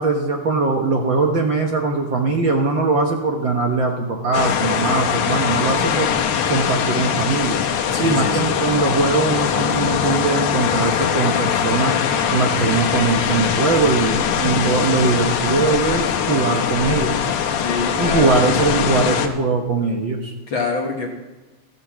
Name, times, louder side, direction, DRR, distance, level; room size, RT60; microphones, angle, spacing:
voice 1, 0.0-6.1 6.5-7.6 8.0-12.0 12.3-17.1 18.0-20.3, right 3 dB, 55° right, 1 dB, 1.4 m, -21 dB
sound 1, 4.3-19.3, left 8 dB, 85° left, 2.4 m, -21 dB
voice 2, 7.9-8.5 17.6-18.6 20.5-21.1, left 3 dB, 50° left, 1 dB, 1.6 m, -25 dB
14.5 x 8.3 x 7.4 m, 1.2 s
omnidirectional pair, 3.4 m